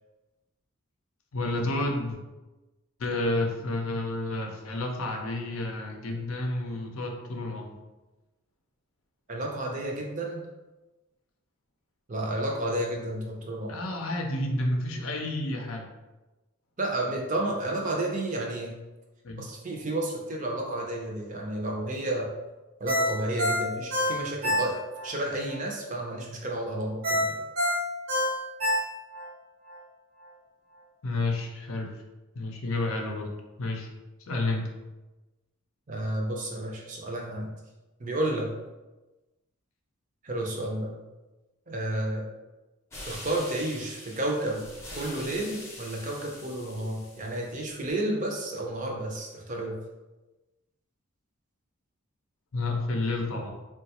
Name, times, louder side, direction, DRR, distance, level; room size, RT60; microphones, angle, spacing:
voice 1, 1.3-2.2 3.0-7.7 13.7-15.9 19.2-19.5 31.0-31.9 32.3-33.3 33.6-33.9 34.3-34.6 52.5-53.5, left 2 dB, 70° left, 2 dB, 0.5 m, -30 dB
voice 2, 9.3-10.4 12.1-13.8 16.8-18.7 19.4-22.3 22.8-27.3 35.9-37.5 38.0-38.5 40.2-40.9 41.7-42.2 43.0-44.6 45.0-49.7, right 1 dB, 35° right, 0 dB, 0.5 m, -31 dB
Ringtone, 22.9-25.1 25.5-25.6 27.0-29.3 29.7-29.8, left 1 dB, 70° right, 1.0 m, -27 dB
sound 1, 42.9-47.9, left 1 dB, 10° left, 0.6 m, -44 dB
3.8 x 2.2 x 2.8 m, 1.1 s
head